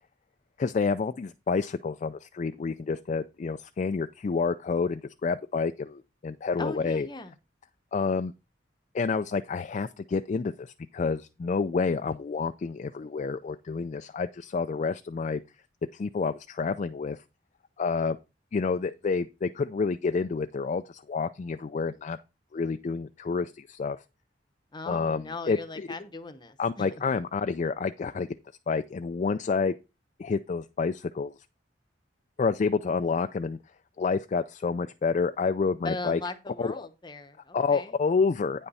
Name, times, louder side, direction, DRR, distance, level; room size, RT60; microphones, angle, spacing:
voice 1, 0.6-7.1 7.9-8.3 8.9-15.4 15.9-17.2 17.8-18.2 18.5-22.2 22.5-24.0 24.9-25.9 26.6-28.3 28.7-29.7 30.2-31.3 32.4-33.6 34.0-36.2 36.6-36.7 37.5-38.7, left 4 dB, 40° left, 0.3 m, -29 dB
voice 2, 6.6-7.3 24.7-26.9 35.8-38.0, left 2 dB, 25° left, 0.8 m, -38 dB
9.2 x 5.5 x 4.1 m
head